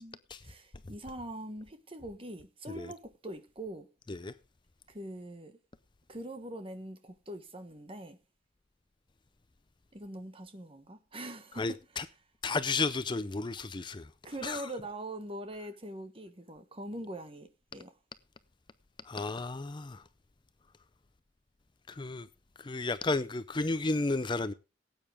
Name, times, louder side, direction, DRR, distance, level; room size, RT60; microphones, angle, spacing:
voice 1, 0.0-3.9 4.9-5.6 6.1-8.2 9.9-11.6 14.2-17.9, right 1 dB, 30° right, 1.5 m, -43 dB
voice 2, 11.5-12.1 12.4-14.1 14.4-14.7 19.0-20.0 21.9-22.3 22.6-24.5, left 3 dB, 25° left, 0.5 m, -33 dB
17.5 x 8.9 x 3.5 m
head